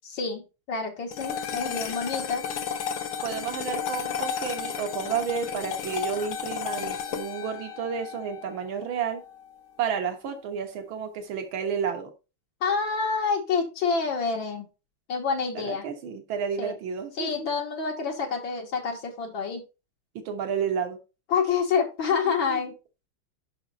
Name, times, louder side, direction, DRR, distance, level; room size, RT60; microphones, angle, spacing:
voice 1, 0.1-2.4 12.6-14.7 15.1-15.8 16.6-16.7 17.2-19.6 21.3-22.7, left 5 dB, 65° left, 0 dB, 2.0 m, -27 dB
sound 1, 1.1-9.6, left 7 dB, 90° left, 1.9 m, -33 dB
voice 2, 1.5-2.0 3.2-9.2 9.8-12.1 15.6-17.5 20.2-21.0 22.1-22.7, right 7 dB, 65° right, 5 dB, 2.0 m, -31 dB
6.0 x 5.7 x 4.0 m, 0.29 s
omnidirectional pair, 2.4 m